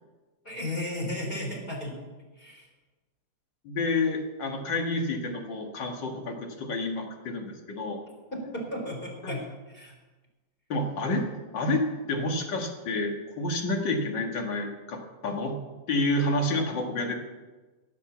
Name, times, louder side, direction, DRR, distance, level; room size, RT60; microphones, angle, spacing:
voice 1, 0.4-2.0 2.4-2.7 8.3-9.9, left 1 dB, 25° left, 0 dB, 4.3 m, -34 dB
voice 2, 3.6-8.0 9.2-9.4 10.7-11.3 11.5-15.6 15.9-17.1, left 2 dB, 65° left, 3 dB, 2.5 m, -29 dB
16.5 x 8.4 x 7.2 m, 1.2 s
omnidirectional pair, 2.2 m